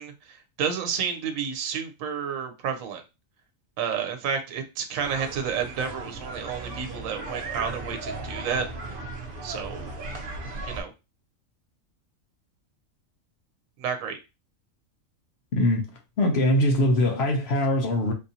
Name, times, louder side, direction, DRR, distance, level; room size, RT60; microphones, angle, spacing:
voice 1, 0.0-3.0 3.8-8.7 9.4-9.9 10.6-10.9 13.8-14.2, right 7 dB, 80° right, 1.1 m, -30 dB
sound 1, 5.0-10.8, right 2 dB, 50° right, 0.8 m, -36 dB
voice 2, 15.5-15.9 16.2-18.1, left 1 dB, 55° left, 0.9 m, -22 dB
3.6 x 2.6 x 2.7 m
omnidirectional pair, 1.4 m